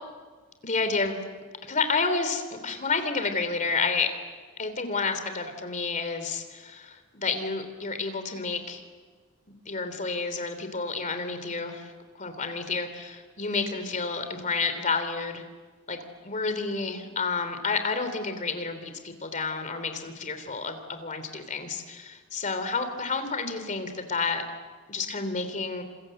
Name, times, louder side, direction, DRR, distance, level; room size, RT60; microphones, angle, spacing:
voice 1, 0.6-1.2 1.7-4.1 4.6-8.8 9.5-11.9 12.2-15.4 15.9-24.4 24.9-25.8, left 4 dB, 35° left, 8 dB, 3.1 m, -30 dB
28.5 x 26.5 x 7.8 m, 1.5 s
head